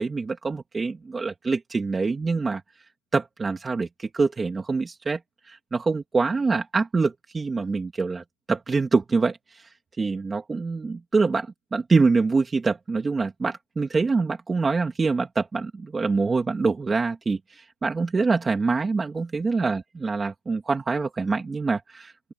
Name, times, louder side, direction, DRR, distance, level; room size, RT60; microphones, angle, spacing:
voice 1, 0.0-2.6 3.1-5.2 5.5-9.6 10.0-22.3, right 4 dB, 5° right, 2.9 m, -25 dB
open air
hypercardioid pair, 165°, 0 cm